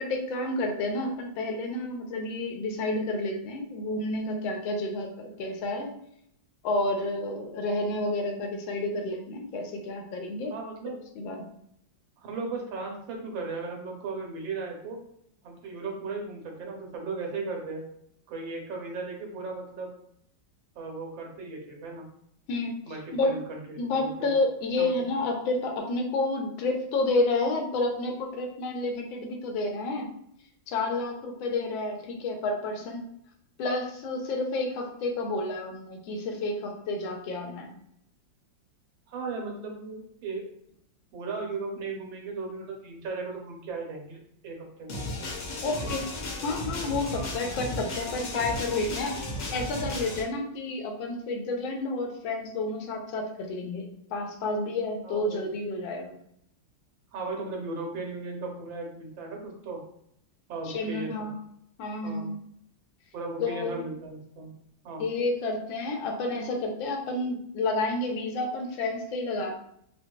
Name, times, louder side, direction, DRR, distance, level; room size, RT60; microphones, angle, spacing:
voice 1, 0.0-5.9 6.6-10.5 11.2-11.4 22.5-22.8 23.1-23.3 23.8-30.1 30.7-33.1 33.6-37.7 45.6-46.1 46.4-49.2 49.5-56.2 60.6-61.4 61.8-62.4 63.4-63.9 65.0-69.6, left 2 dB, 85° left, 3 dB, 1.4 m, -30 dB
voice 2, 10.5-11.0 12.2-15.0 15.4-17.8 18.3-19.9 20.7-22.1 22.9-24.3 24.8-24.9 39.1-40.4 41.1-45.1 45.8-45.9 47.4-47.6 55.0-55.6 57.1-59.8 60.5-61.3 62.0-62.3 63.1-64.5 64.8-65.1, right 3 dB, 80° right, 0 dB, 1.5 m, -36 dB
sound 1, 44.9-50.2, left 1 dB, 65° left, 0.9 m, -35 dB
3.9 x 2.3 x 2.2 m, 0.71 s
omnidirectional pair, 2.1 m